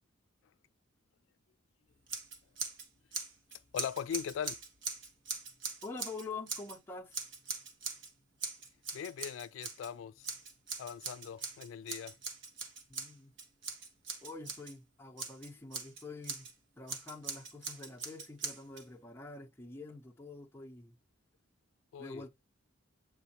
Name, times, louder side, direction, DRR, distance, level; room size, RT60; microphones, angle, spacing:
Scissors, 2.1-2.9 3.1-6.8 7.1-8.1 8.4-9.9 10.2-14.7 15.2-16.5 16.9-18.8, right 4 dB, 65° right, 1.4 m, -41 dB
voice 1, 3.7-4.6 8.9-10.3 10.8-12.2 21.9-22.2, left 8 dB, 70° left, 0.3 m, -40 dB
voice 2, 5.8-7.2 12.9-13.3 14.2-16.5 16.8-20.9 22.0-22.3, left 3 dB, 10° left, 0.7 m, -46 dB
8.0 x 4.2 x 2.9 m
head